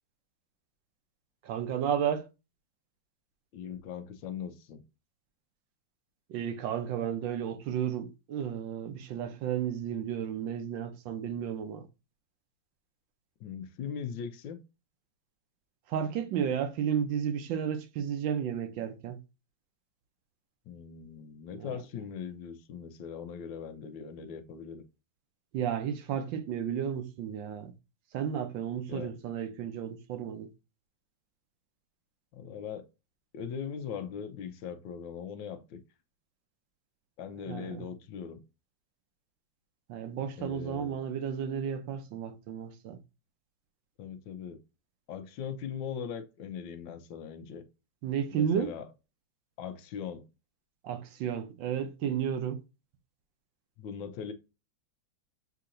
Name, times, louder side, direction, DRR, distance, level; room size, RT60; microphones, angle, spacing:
voice 1, 1.4-2.3 6.3-11.9 15.9-19.2 21.6-21.8 25.5-27.7 28.1-30.5 37.5-37.9 39.9-43.0 48.0-48.7 50.8-52.6, right 8 dB, 75° right, 1.4 m, -33 dB
voice 2, 3.5-4.8 13.4-14.6 20.7-24.8 28.9-29.1 32.3-32.8 33.3-35.8 37.2-38.4 40.4-41.0 44.0-44.6 45.1-47.6 48.3-48.8 49.6-50.3 53.8-54.3, left 7 dB, 80° left, 1.3 m, -40 dB
6.6 x 2.8 x 2.5 m
omnidirectional pair, 2.1 m